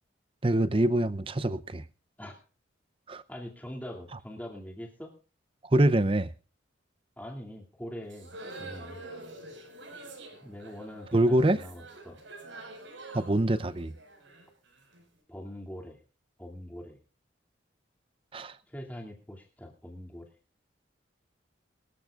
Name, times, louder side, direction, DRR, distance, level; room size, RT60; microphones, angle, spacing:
voice 1, 0.4-1.8 3.1-3.2 5.6-6.3 11.1-11.6 13.1-13.9 18.3-18.6, right 1 dB, 25° right, 0.6 m, -25 dB
voice 2, 3.3-5.1 7.2-9.0 10.4-12.2 15.3-16.0 16.4-17.0 18.7-20.3, equal, 10° left, 2.5 m, -43 dB
sound 1, 8.1-15.0, right 2 dB, 75° right, 5.3 m, -46 dB
23.5 x 13.5 x 2.4 m
head